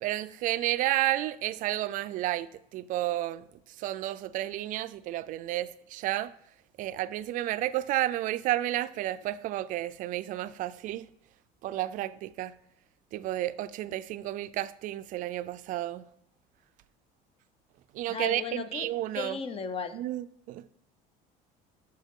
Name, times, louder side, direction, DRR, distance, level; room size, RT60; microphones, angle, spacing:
voice 1, 0.0-3.4 3.8-6.3 6.8-11.1 11.6-12.6 13.1-16.1 17.9-19.4 19.9-20.7, right 15 dB, 50° right, 0.4 m, -31 dB
voice 2, 18.1-18.9 19.1-20.0, left 5 dB, 35° left, 0.6 m, -35 dB
9.2 x 6.6 x 3.7 m
cardioid pair, 145°, 17 cm